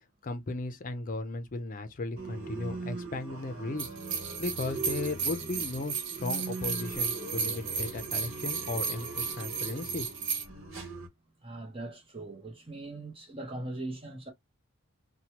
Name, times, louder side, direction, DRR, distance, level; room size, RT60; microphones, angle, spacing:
voice 1, 0.2-10.1, left 2 dB, 40° left, 0.5 m, -36 dB
sound 1, 2.2-11.1, right 3 dB, 80° right, 1.1 m, -41 dB
sound 2, 3.8-10.5, right 6 dB, 65° right, 0.7 m, -34 dB
voice 2, 11.4-14.3, right 2 dB, 30° right, 0.8 m, -40 dB
3.0 x 2.2 x 2.8 m
head